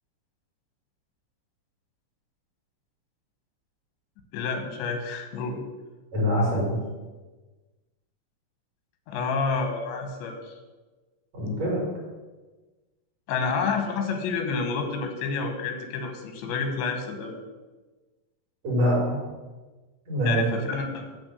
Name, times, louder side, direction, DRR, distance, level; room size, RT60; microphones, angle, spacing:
voice 1, 4.3-5.6 9.1-10.6 13.3-17.4 20.3-21.1, left 4 dB, 90° left, 5 dB, 3.6 m, -29 dB
voice 2, 6.1-6.8 11.3-11.8 18.6-19.2 20.1-20.4, equal, 50° right, -5 dB, 5.5 m, -24 dB
12.5 x 4.3 x 8.0 m, 1.2 s
omnidirectional pair, 5.0 m